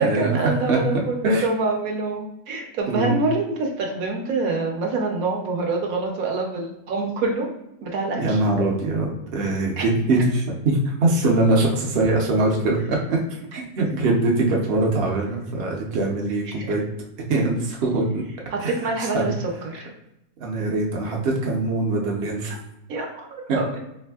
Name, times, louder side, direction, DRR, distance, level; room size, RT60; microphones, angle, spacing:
voice 1, 0.0-7.5 7.8-8.4 9.8-9.9 13.5-13.6 16.5-16.8 18.5-19.9 22.9-23.8, right 3 dB, 70° right, 1 dB, 1.1 m, -26 dB
voice 2, 2.9-3.2 8.2-13.2 13.5-16.8 17.2-18.2 18.6-18.7 19.1-19.3 20.4-22.6, right 2 dB, 50° right, -1 dB, 0.8 m, -22 dB
3.5 x 3.3 x 2.3 m, 0.86 s
omnidirectional pair, 1.6 m